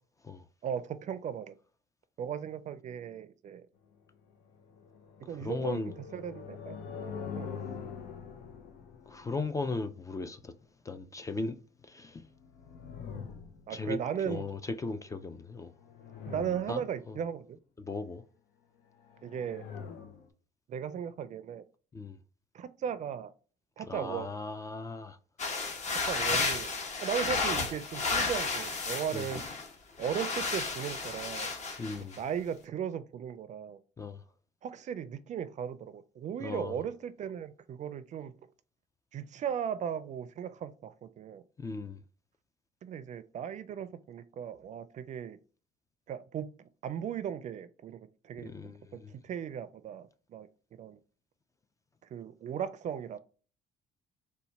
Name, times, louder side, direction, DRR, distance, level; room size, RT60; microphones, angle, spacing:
voice 1, 0.6-1.5 2.2-3.7 5.3-6.8 7.4-7.6 13.7-14.5 16.3-17.6 19.2-19.6 20.7-21.6 22.5-23.3 23.8-24.3 26.1-26.7 27.0-29.4 30.0-31.5 32.2-33.8 34.6-38.3 39.1-41.4 42.8-45.4 46.1-48.7 49.1-50.5 50.8-51.0 52.1-53.2, right 8 dB, 45° right, 0.4 m, -37 dB
sound 1, 4.5-10.2 12.2-14.1 15.6-17.1 19.0-20.3, left 6 dB, 80° left, 0.7 m, -44 dB
voice 2, 5.4-5.9 9.1-10.5 10.9-11.6 11.9-12.2 13.7-14.0 14.3-15.7 16.7-16.8 17.9-18.2 21.9-22.2 23.9-25.2 29.1-29.2 31.8-32.2 34.0-34.2 36.4-36.7 41.6-42.0 48.4-49.1, left 3 dB, 20° left, 0.3 m, -37 dB
sound 2, 25.4-29.7 30.0-32.2, left 4 dB, 45° left, 1.0 m, -32 dB
4.0 x 2.2 x 4.4 m
cardioid pair, 110°, 17 cm